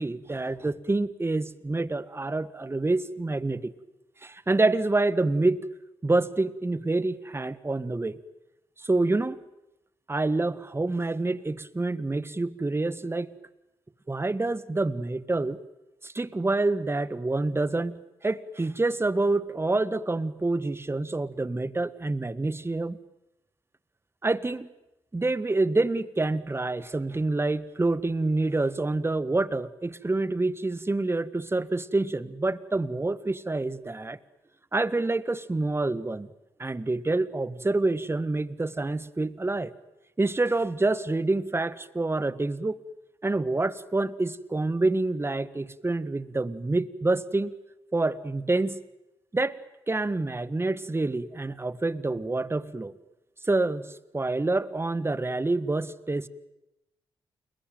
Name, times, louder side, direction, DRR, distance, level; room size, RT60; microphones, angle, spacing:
voice 1, 0.0-3.7 4.2-5.6 6.0-8.2 8.8-9.4 10.1-13.3 14.1-15.6 16.0-23.0 24.2-24.7 25.1-34.2 34.7-36.3 36.6-39.7 40.2-42.8 43.2-47.5 47.9-48.8 49.3-49.6 49.9-53.0 53.5-56.3, right 2 dB, 20° right, 16 dB, 1.5 m, -27 dB
29.5 x 20.5 x 9.4 m, 0.94 s
hypercardioid pair, 40°, 12 cm